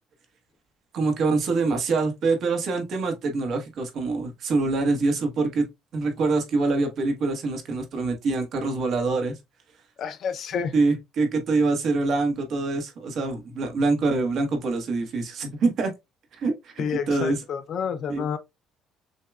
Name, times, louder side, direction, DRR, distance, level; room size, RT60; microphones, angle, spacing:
voice 1, 0.9-5.7 5.9-9.4 10.7-15.9 16.3-17.4 18.1-18.2, right 3 dB, 45° right, 1.0 m, -25 dB
voice 2, 10.0-10.7 16.8-18.4, left 7 dB, 40° left, 0.4 m, -29 dB
6.3 x 2.2 x 2.3 m
cardioid pair, 170°, 0 cm